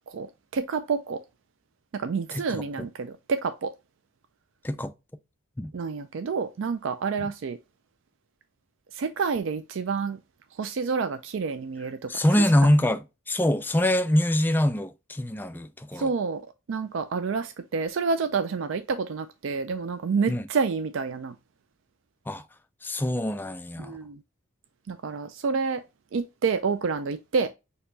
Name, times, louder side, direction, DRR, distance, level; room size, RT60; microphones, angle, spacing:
voice 1, 0.5-1.2 1.9-3.7 5.7-7.6 8.9-10.2 10.6-12.1 16.0-16.4 16.7-21.3 23.8-24.2 24.9-25.8 26.1-27.5, right 5 dB, 65° right, 0.4 m, -28 dB
voice 2, 2.3-2.9 4.6-4.9 5.6-5.7 7.2-7.3 12.1-16.1 20.3-20.5 22.3-22.4 22.8-24.0, left 1 dB, 10° left, 0.3 m, -24 dB
6.5 x 2.9 x 2.7 m
head